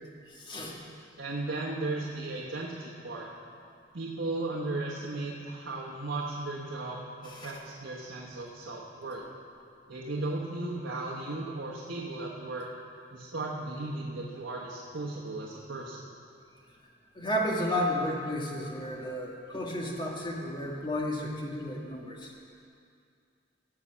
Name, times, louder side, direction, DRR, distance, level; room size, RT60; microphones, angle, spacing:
voice 1, 0.3-0.7 7.2-7.5 17.1-22.3, left 1 dB, 25° left, -1 dB, 1.5 m, -32 dB
voice 2, 1.2-3.3 3.9-9.2 9.9-12.7 13.1-16.0, right 2 dB, 80° right, -4 dB, 1.3 m, -36 dB
16.0 x 5.8 x 7.4 m, 2.4 s
head